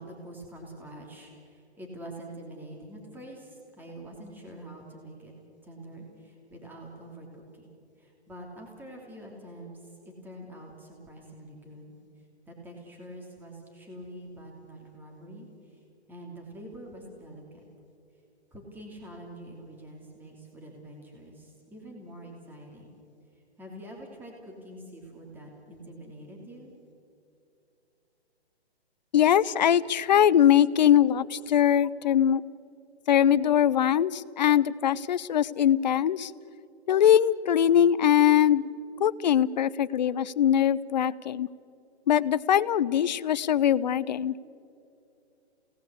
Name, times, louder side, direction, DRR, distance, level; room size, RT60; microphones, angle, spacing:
voice 1, 0.0-5.3 5.6-7.7 8.0-12.0 12.5-15.8 16.1-17.6 18.5-22.9 23.6-26.7, right 1 dB, 5° right, 0 dB, 3.0 m, -45 dB
voice 2, 29.1-32.4 33.1-36.3 36.9-38.6 39.0-41.5 42.1-44.3, left 10 dB, 40° left, 18 dB, 0.6 m, -22 dB
29.0 x 18.5 x 8.3 m, 2.7 s
hypercardioid pair, 150°, 33 cm